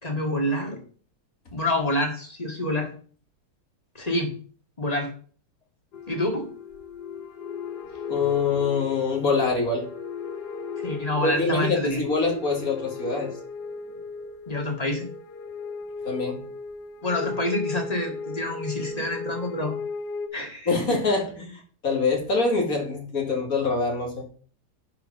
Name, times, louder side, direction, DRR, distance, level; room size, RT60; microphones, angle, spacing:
voice 1, 0.0-0.8 1.5-2.9 3.9-4.3 4.8-5.1 6.1-6.5 10.8-12.0 14.5-15.1 17.0-19.7 20.3-21.0, left 1 dB, 25° left, 1 dB, 2.3 m, -27 dB
sound 1, 5.9-20.3, left 4 dB, 85° left, 1.7 m, -36 dB
voice 2, 8.1-9.8 11.2-13.3 16.0-16.4 20.7-24.2, left 4 dB, 60° left, 1 dB, 2.5 m, -25 dB
10.5 x 4.9 x 5.5 m, 0.43 s
omnidirectional pair, 1.7 m